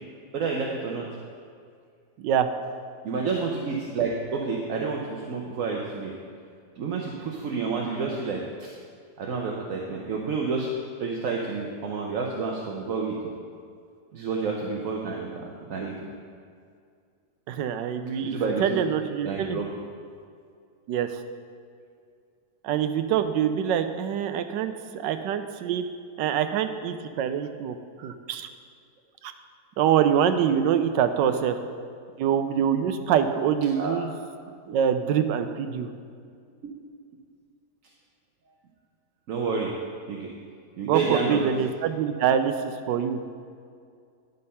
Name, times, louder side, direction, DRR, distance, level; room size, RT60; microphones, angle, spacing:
voice 1, 0.3-1.1 3.0-6.1 6.8-8.7 9.2-10.7 11.0-13.2 14.1-16.1 18.2-18.8 19.2-19.7 31.3-31.4 33.7-34.0 34.7-34.8 36.6-36.7 39.3-39.7 40.1-40.3 40.8-41.5, right 4 dB, 60° right, -1 dB, 1.0 m, -29 dB
voice 2, 2.2-2.5 17.5-19.6 20.9-21.2 22.6-25.9 26.2-28.5 29.2-29.3 29.8-31.6 32.2-34.1 34.7-35.9 40.8-43.2, right 8 dB, 80° right, 9 dB, 1.2 m, -25 dB
10.5 x 5.3 x 5.5 m, 2.2 s
omnidirectional pair, 1.9 m